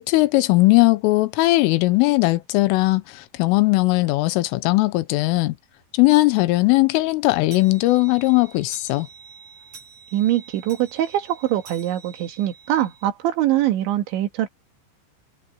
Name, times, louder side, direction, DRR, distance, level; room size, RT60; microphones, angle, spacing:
voice 1, 0.0-5.6 5.9-9.1, left 20 dB, 85° left, 3.5 m, -18 dB
sound 1, 5.2-5.3 5.8-5.9 6.2-6.3 6.7-13.1, right 5 dB, 30° right, 8.2 m, -47 dB
voice 2, 10.1-14.5, right 13 dB, 70° right, 3.9 m, -23 dB
omnidirectional pair, 5.7 m